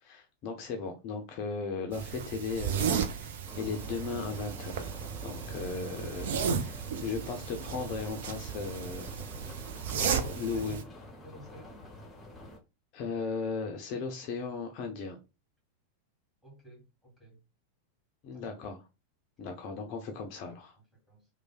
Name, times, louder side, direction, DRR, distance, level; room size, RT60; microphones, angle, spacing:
voice 1, 0.0-9.2 10.0-10.8 12.9-15.2 18.2-18.8 19.4-20.8, left 4 dB, 40° left, 0.4 m, -37 dB
sound 1, 1.9-10.8, right 7 dB, 55° right, 0.4 m, -34 dB
sound 2, 3.4-12.6, left 1 dB, 15° left, 0.7 m, -47 dB
voice 2, 5.1-6.2 9.8-10.8 11.2-11.8 16.4-17.4 18.3-18.6 20.9-21.3, right 1 dB, 5° right, 1.7 m, -52 dB
3.1 x 2.1 x 2.3 m
figure-of-eight pair, 90°, 0 cm